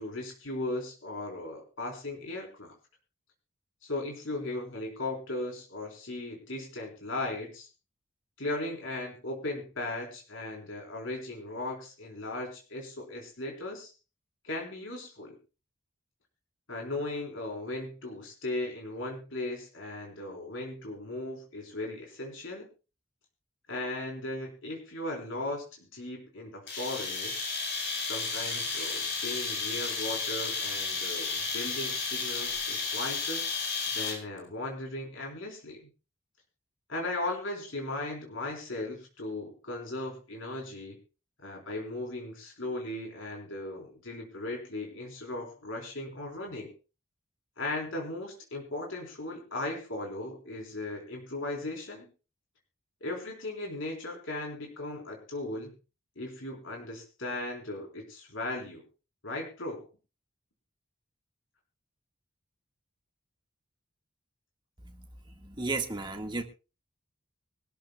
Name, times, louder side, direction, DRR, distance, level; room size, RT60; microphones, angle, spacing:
voice 1, 0.0-2.7 3.8-7.7 8.4-13.9 14.4-15.4 16.7-22.7 23.7-25.6 25.9-27.4 28.0-33.4 33.9-35.9 36.9-41.0 41.4-46.7 47.6-52.1 53.0-55.7 56.2-58.8 59.2-59.8, left 2 dB, 80° left, 0 dB, 3.9 m, -37 dB
sound 1, 26.7-34.4, left 4 dB, 60° left, 5.7 m, -32 dB
voice 2, 65.3-66.4, right 3 dB, 25° right, 4 dB, 1.6 m, -33 dB
24.0 x 13.0 x 2.3 m, 0.32 s
head